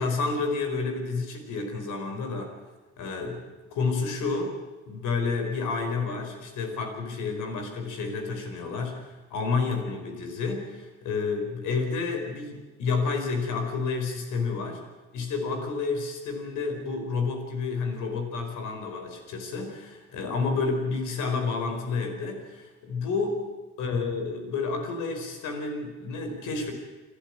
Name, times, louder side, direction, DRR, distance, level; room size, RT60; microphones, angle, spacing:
voice 1, 0.0-2.5 3.0-3.4 3.7-4.5 4.9-14.8 15.1-23.4 23.8-26.7, left 4 dB, 90° left, 5 dB, 4.7 m, -30 dB
28.5 x 11.5 x 8.9 m, 1.3 s
cardioid pair, 90°, 30 cm